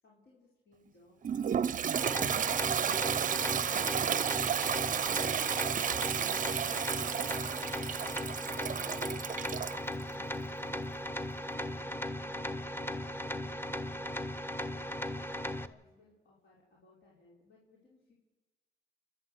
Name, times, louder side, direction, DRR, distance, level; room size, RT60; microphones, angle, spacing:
voice 1, 0.0-2.2 11.4-13.0 13.3-14.2 14.7-18.1, left 3 dB, 65° left, -4 dB, 5.4 m, -61 dB
Toilet flush, 1.2-9.8, right 8 dB, 40° right, 0.6 m, -32 dB
sound 1, 1.9-15.7, left 1 dB, 10° left, 1.1 m, -37 dB
27.0 x 12.0 x 8.2 m, 1.2 s
cardioid pair, 90°, 20 cm